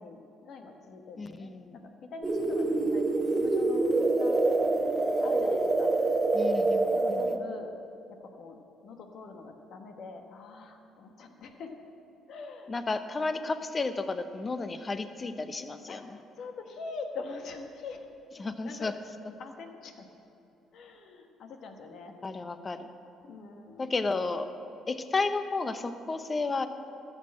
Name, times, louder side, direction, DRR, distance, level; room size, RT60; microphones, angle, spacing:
voice 1, 0.0-4.4 5.2-5.9 6.9-7.7 8.1-11.7 12.3-12.8 15.9-18.1 18.6-18.9 19.4-20.1 20.7-22.1 23.2-24.0, left 4 dB, 65° left, 5 dB, 1.3 m, -44 dB
voice 2, 1.2-1.9 6.3-7.5 12.7-16.2 18.4-18.9 22.2-22.9 23.8-24.5 24.9-26.7, left 3 dB, 30° left, 10 dB, 0.8 m, -32 dB
sound 1, 2.2-7.4, right 2 dB, 25° right, 1.0 m, -26 dB
13.0 x 6.4 x 7.5 m, 2.9 s
supercardioid pair, 65°, 0 cm